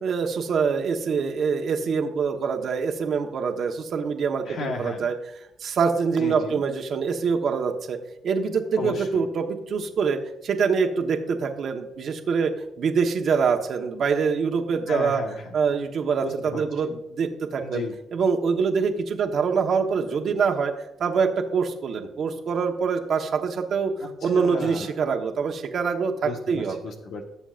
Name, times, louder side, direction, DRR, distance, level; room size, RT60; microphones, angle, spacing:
voice 1, 0.0-5.1 5.6-8.0 8.2-12.5 12.8-15.2 15.5-17.8 18.1-20.7 21.0-23.9 24.2-26.8, right 5 dB, 60° right, 4 dB, 1.2 m, -25 dB
voice 2, 4.4-5.1 6.1-6.6 8.8-9.3 14.9-15.5 16.2-17.0 17.6-17.9 24.2-24.9 26.2-27.2, left 3 dB, 70° left, 2 dB, 1.4 m, -34 dB
17.0 x 7.1 x 2.5 m, 0.90 s
cardioid pair, 90°, 0 cm